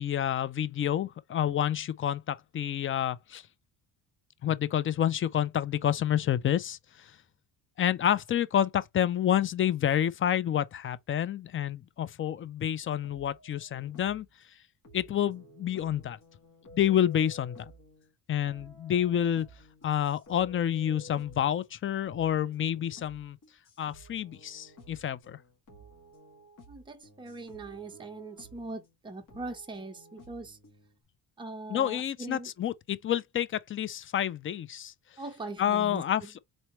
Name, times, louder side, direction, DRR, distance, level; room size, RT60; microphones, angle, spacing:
voice 1, 0.0-3.4 4.4-7.1 7.8-14.3 14.9-16.2 16.7-17.7 18.3-19.5 19.8-23.4 23.8-25.4 31.7-34.9 35.6-36.4, left 10 dB, 35° left, 0.4 m, -29 dB
sound 1, 12.6-14.3 14.8-18.1 18.5-28.9 29.3-31.0, right 1 dB, 50° left, 2.0 m, -53 dB
voice 2, 26.7-30.6 31.4-32.5 35.2-36.3, right 2 dB, 10° right, 0.9 m, -41 dB
4.1 x 3.2 x 2.9 m
cardioid pair, 140°, 39 cm